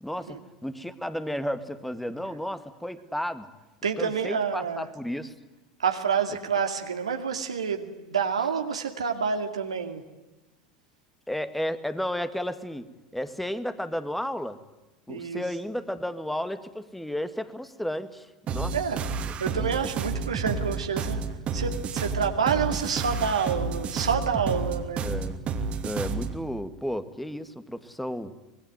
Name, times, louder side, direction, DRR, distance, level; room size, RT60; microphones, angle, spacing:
voice 1, 0.0-3.5 4.0-5.3 11.3-12.9 13.1-14.6 15.1-19.0 19.5-19.7 25.0-25.4 25.8-28.3, equal, 5° left, 12 dB, 2.2 m, -33 dB
voice 2, 3.8-4.9 5.8-10.0 15.1-15.4 18.7-21.2 21.5-25.0, right 6 dB, 85° right, 5 dB, 2.5 m, -28 dB
sound 1, 18.5-26.4, right 5 dB, 40° right, 2.8 m, -30 dB
26.0 x 21.5 x 9.3 m, 1.1 s
figure-of-eight pair, 80°, 3 cm